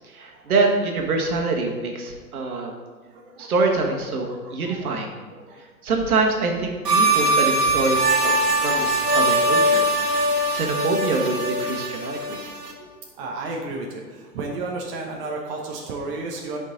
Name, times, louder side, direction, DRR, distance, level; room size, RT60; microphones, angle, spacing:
voice 1, 0.1-2.7 3.4-5.1 5.8-10.0 10.5-12.4, right 3 dB, 65° right, 1 dB, 1.8 m, -25 dB
sound 1, 6.8-12.7, right 1 dB, 80° right, 1.6 m, -21 dB
voice 2, 13.2-14.0 14.3-16.6, right 3 dB, 35° right, 0 dB, 1.1 m, -32 dB
10.5 x 5.5 x 4.0 m, 1.5 s
figure-of-eight pair, 115°, 47 cm